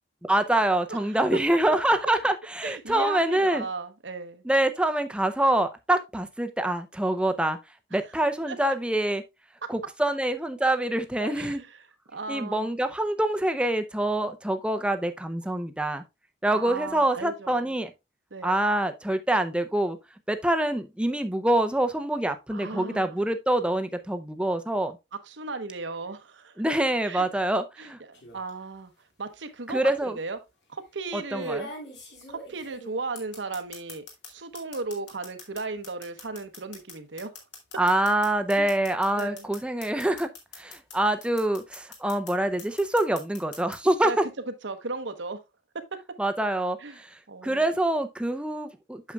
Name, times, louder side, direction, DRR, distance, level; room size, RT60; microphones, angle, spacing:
voice 1, 0.2-3.7 4.4-7.6 7.9-9.2 9.7-11.6 12.3-16.0 16.4-17.9 18.4-20.0 20.3-25.0 26.6-28.0 29.7-30.2 31.1-31.7 37.8-40.3 40.6-44.2 46.2-49.1, right 1 dB, 5° right, 0.6 m, -25 dB
voice 2, 0.9-1.6 2.6-4.4 8.5-8.6 11.2-11.7 12.1-12.7 16.5-17.8 18.3-18.6 22.5-23.3 25.2-26.6 27.0-27.2 27.8-28.9 29.2-30.4 30.7-31.7 32.3-37.3 38.6-38.7 39.1-39.5 44.0-44.2 44.6-45.4 46.8-47.0 47.3-47.7, right 3 dB, 80° right, 1.0 m, -36 dB
sound 1, 28.1-28.5 29.7-29.8 31.3-34.3 34.5-40.9 41.2-42.3 42.6-43.8, left 2 dB, 65° left, 2.5 m, -43 dB
8.3 x 6.6 x 2.3 m
head